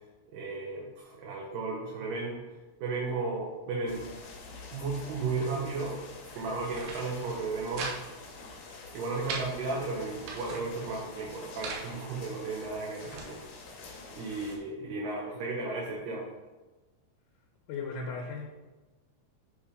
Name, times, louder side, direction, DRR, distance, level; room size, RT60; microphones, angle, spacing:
voice 1, 0.3-2.4 2.8-4.1 4.7-6.0 6.4-8.0 8.9-13.4 14.1-16.3, right 3 dB, 70° right, -3 dB, 2.4 m, -34 dB
sound 1, 3.9-14.6, left 3 dB, 65° left, 2.2 m, -47 dB
sound 2, 6.5-7.0 7.3-8.0 8.3-8.4 8.7-9.5 10.0-10.6 11.3-11.9 12.5-13.3, right 4 dB, 85° right, 3.1 m, -40 dB
voice 2, 17.7-18.5, left 4 dB, 90° left, 0 dB, 2.7 m, -36 dB
8.2 x 3.5 x 4.9 m, 1.2 s
omnidirectional pair, 4.5 m